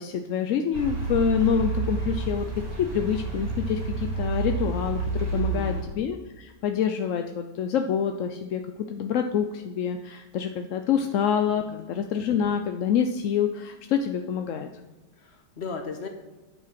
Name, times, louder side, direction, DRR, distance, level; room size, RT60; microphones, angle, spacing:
voice 1, 0.0-2.5 2.8-8.6 8.9-14.7, left 7 dB, 65° left, 5 dB, 0.8 m, -26 dB
sound 1, 0.7-5.8, right 3 dB, 75° right, 3.7 m, -29 dB
voice 2, 5.3-5.8 11.7-11.8 15.2-16.1, left 4 dB, 40° left, 4 dB, 1.5 m, -37 dB
9.5 x 7.5 x 5.9 m, 1.2 s
omnidirectional pair, 1.9 m